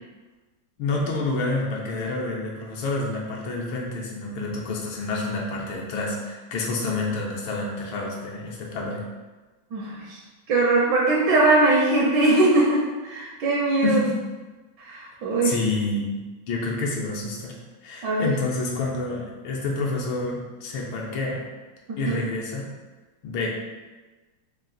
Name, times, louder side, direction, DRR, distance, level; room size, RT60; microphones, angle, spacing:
voice 1, 0.8-9.0 13.8-14.1 15.4-16.2 16.5-17.6 17.8-21.4 22.0-22.7 23.2-23.5, left 3 dB, 80° left, -2 dB, 1.5 m, -28 dB
voice 2, 9.7-10.2 10.5-14.0 14.8-15.5 18.0-18.3 21.9-22.2, right 2 dB, 75° right, -3 dB, 1.2 m, -21 dB
3.8 x 2.4 x 3.8 m, 1.2 s
omnidirectional pair, 2.2 m